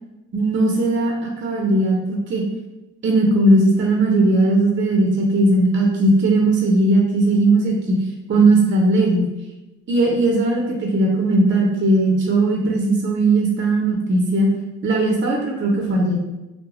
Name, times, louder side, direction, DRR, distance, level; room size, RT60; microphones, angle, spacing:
voice 1, 0.3-2.4 3.0-8.0 8.3-9.3 9.9-14.5 14.8-16.2, right 2 dB, 35° right, -1 dB, 0.6 m, -18 dB
2.2 x 2.1 x 3.1 m, 1.0 s
cardioid pair, 65°, 32 cm